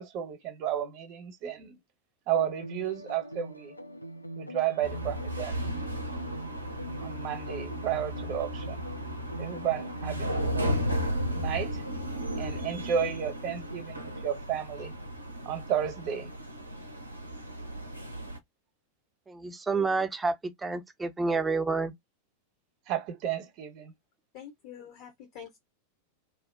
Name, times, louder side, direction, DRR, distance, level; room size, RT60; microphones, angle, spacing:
voice 1, 0.0-1.8 2.3-3.7 4.4-5.6 7.0-8.9 9.4-10.8 11.3-11.8 12.3-14.9 15.4-16.3 22.9-23.9, right 9 dB, 40° right, 0.8 m, -32 dB
sound 1, 2.3-14.2, equal, 85° left, 0.3 m, -44 dB
sound 2, 4.8-18.4, equal, 85° right, 0.5 m, -35 dB
voice 2, 19.3-21.9, right 4 dB, 10° right, 0.4 m, -29 dB
voice 3, 24.3-25.6, left 9 dB, 45° left, 0.7 m, -46 dB
2.5 x 2.0 x 2.4 m
figure-of-eight pair, 90°, 0 cm